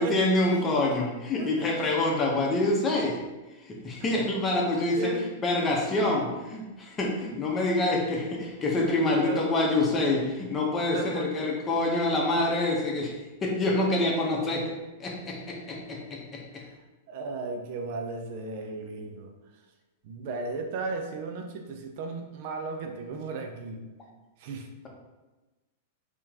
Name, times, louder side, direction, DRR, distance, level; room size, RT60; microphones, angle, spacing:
voice 1, 0.0-3.2 3.6-5.1 5.4-14.7 15.0-16.6, left 2 dB, 25° left, -1 dB, 1.1 m, -26 dB
voice 2, 1.4-1.9 4.0-4.2 5.0-5.3 9.2-9.4 10.9-11.5 16.6-16.8 17.1-19.3 20.0-23.8 24.4-24.9, right 3 dB, 55° right, 3 dB, 0.6 m, -35 dB
4.4 x 3.0 x 3.6 m, 1.2 s
hypercardioid pair, 105°, 0 cm